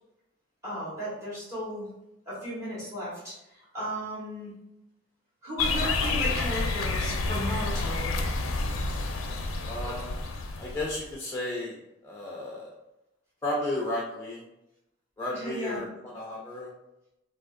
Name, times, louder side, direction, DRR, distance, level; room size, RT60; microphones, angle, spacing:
voice 1, 0.6-1.9 2.3-4.5 5.4-8.1 15.3-15.9, equal, 15° right, -8 dB, 1.3 m, -35 dB
sound 1, 5.6-11.1, left 3 dB, 80° left, 0.4 m, -29 dB
voice 2, 9.6-10.2 10.6-12.7 13.4-14.4 15.2-16.7, left 1 dB, 15° left, -3 dB, 0.4 m, -33 dB
3.5 x 2.4 x 2.5 m, 0.88 s
head